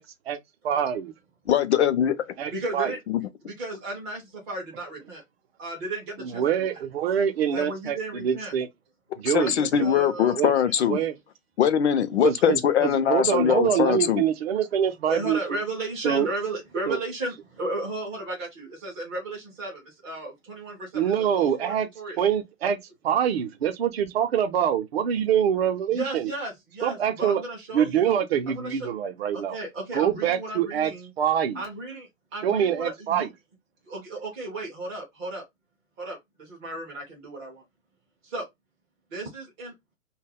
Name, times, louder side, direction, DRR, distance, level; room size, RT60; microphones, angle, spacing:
voice 1, 0.6-1.1 2.4-2.9 6.2-8.7 9.2-9.9 10.3-10.5 10.9-11.1 12.2-15.6 16.0-16.3 16.9-17.0 20.9-21.9 22.2-22.8 23.0-26.3 26.8-27.4 27.7-29.6 29.9-30.9 31.2-31.6 32.4-33.3, right 9 dB, 50° right, 0.6 m, -25 dB
voice 2, 1.5-2.2 9.3-11.0 11.6-14.2, left 9 dB, 55° left, 0.6 m, -22 dB
voice 3, 2.5-3.0 3.4-5.2 5.6-6.6 7.5-8.5 9.4-10.4 10.9-11.1 12.4-12.5 15.1-22.2 25.9-28.1 28.5-28.9 29.3-31.1 31.5-33.3 33.9-35.4 36.0-37.6 38.2-38.5 39.1-39.7, right 2 dB, 10° right, 0.4 m, -34 dB
2.3 x 2.0 x 3.4 m
hypercardioid pair, 140°, 40 cm